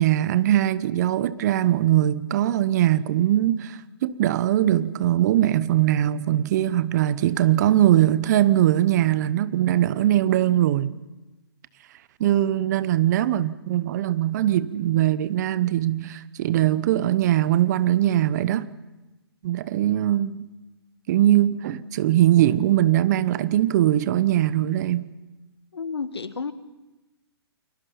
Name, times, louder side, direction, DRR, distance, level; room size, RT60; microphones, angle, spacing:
voice 1, 0.0-10.9 12.2-18.7 19.4-20.4 21.1-25.1, right 12 dB, 40° right, 1.0 m, -21 dB
voice 2, 25.7-26.5, left 5 dB, 75° left, 1.6 m, -31 dB
29.5 x 22.5 x 5.8 m
figure-of-eight pair, 130°, 14 cm